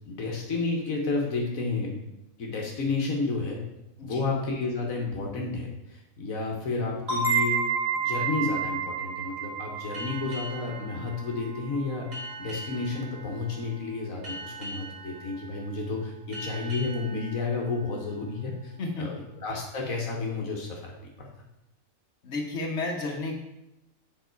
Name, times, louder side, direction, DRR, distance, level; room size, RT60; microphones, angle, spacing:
voice 1, 0.1-2.1 2.4-3.6 4.0-7.6 8.0-12.1 12.4-20.9 21.2-21.3, left 3 dB, 75° left, 0 dB, 1.6 m, -31 dB
sound 1, 7.1-12.5, right 5 dB, 50° right, 2.4 m, -30 dB
sound 2, 9.9-19.1, right 2 dB, 30° right, 2.2 m, -43 dB
voice 2, 22.2-23.4, left 2 dB, 60° left, 0 dB, 1.6 m, -32 dB
7.9 x 5.5 x 4.5 m, 0.90 s
omnidirectional pair, 1.4 m